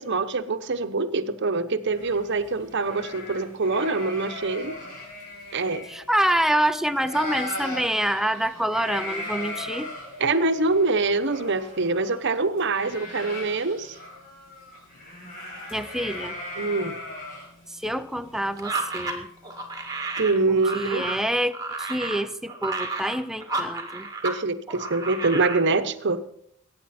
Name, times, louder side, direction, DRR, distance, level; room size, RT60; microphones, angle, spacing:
voice 1, 0.0-4.8 5.5-5.9 10.2-14.0 16.6-17.0 20.2-21.1 24.2-26.2, right 3 dB, 60° right, 10 dB, 1.0 m, -25 dB
sound 1, 1.9-6.7 6.9-19.9, left 2 dB, 45° left, 7.2 m, -38 dB
voice 2, 5.9-9.9 15.7-16.3 17.8-19.3 20.5-24.1, right 1 dB, ahead, 11 dB, 0.6 m, -26 dB
sound 2, 18.6-24.4 24.7-25.6, right 3 dB, 20° right, 2.1 m, -32 dB
21.5 x 9.6 x 4.3 m, 0.68 s
head